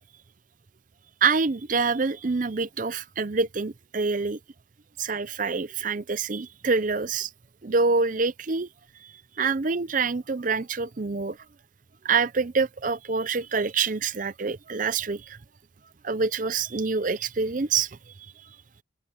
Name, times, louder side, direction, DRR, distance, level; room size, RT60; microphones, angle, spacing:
voice 1, 1.2-4.4 5.0-7.3 7.6-8.7 9.4-11.4 12.0-15.4 16.0-18.0, right 4 dB, 40° right, 0.6 m, -26 dB
open air
head